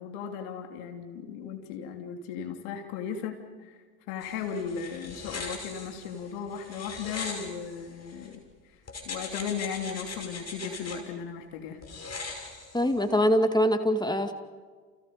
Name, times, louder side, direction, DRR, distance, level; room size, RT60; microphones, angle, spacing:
voice 1, 0.0-3.8 4.1-8.4 9.0-11.8, left 7 dB, 70° left, 4 dB, 3.1 m, -36 dB
sound 1, 4.2-8.4 8.9-11.0 11.8-13.1, left 3 dB, 35° left, 5.6 m, -40 dB
voice 2, 12.7-14.3, equal, 10° left, 7 dB, 2.2 m, -23 dB
30.0 x 29.5 x 5.2 m, 1.5 s
figure-of-eight pair, 55°, 46 cm